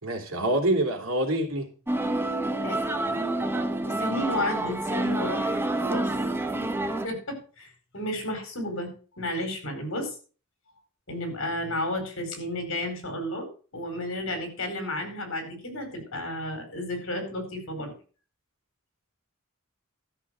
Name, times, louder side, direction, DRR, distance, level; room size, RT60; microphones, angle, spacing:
voice 1, 0.0-1.7, right 1 dB, 70° right, 2 dB, 3.2 m, -26 dB
sound 1, 1.9-7.1, right 1 dB, 10° right, 0.9 m, -28 dB
voice 2, 2.6-3.2 3.9-6.1 6.5-6.7 7.0-10.1 11.1-13.5 13.7-17.9, left 1 dB, 65° left, 5 dB, 4.6 m, -32 dB
13.0 x 6.3 x 6.4 m, 0.38 s
head